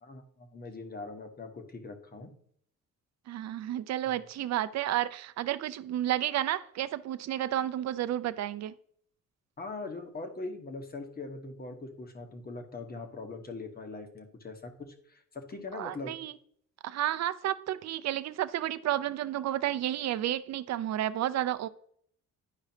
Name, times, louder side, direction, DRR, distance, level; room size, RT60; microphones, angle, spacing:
voice 1, 0.0-2.3 9.6-16.2, left 3 dB, 30° left, 1.3 m, -41 dB
voice 2, 3.3-8.7 15.7-16.3 16.8-21.7, right 12 dB, 60° right, 0.5 m, -31 dB
10.5 x 4.9 x 2.9 m
cardioid pair, 90°, 30 cm